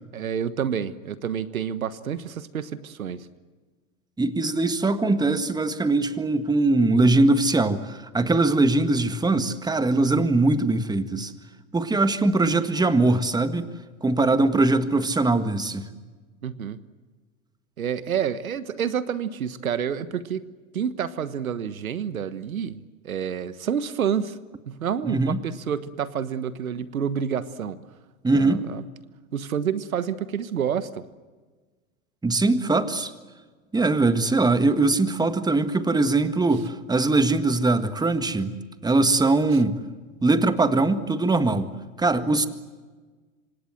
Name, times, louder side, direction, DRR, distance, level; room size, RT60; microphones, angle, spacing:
voice 1, 0.1-3.3 16.4-16.8 17.8-20.4 20.7-24.4 24.7-27.8 28.3-28.8 29.3-31.0, right 8 dB, 85° right, 15 dB, 1.4 m, -28 dB
voice 2, 4.2-11.3 11.7-13.7 14.0-15.9 25.0-25.4 28.2-28.6 32.2-33.1 33.7-38.5 38.8-39.8 40.2-41.7 42.0-42.5, right 2 dB, 10° right, 10 dB, 1.8 m, -21 dB
27.0 x 25.5 x 7.8 m, 1.4 s
hypercardioid pair, 100°, 41 cm